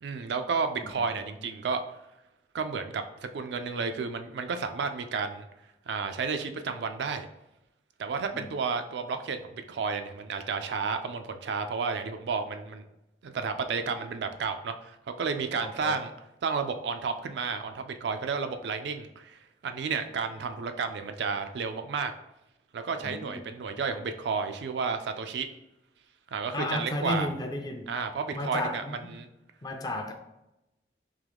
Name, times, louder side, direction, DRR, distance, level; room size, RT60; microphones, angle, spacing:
voice 1, 0.0-1.8 2.5-5.5 5.9-7.3 8.0-12.8 13.2-16.1 16.4-22.1 22.7-25.5 26.3-27.3 27.9-29.3, right 5 dB, 80° right, 7 dB, 0.4 m, -32 dB
voice 2, 15.6-16.0 23.0-23.3 26.5-27.9 28.3-29.0 29.6-30.1, left 1 dB, 20° left, 5 dB, 0.4 m, -33 dB
3.7 x 3.0 x 3.4 m, 0.91 s
head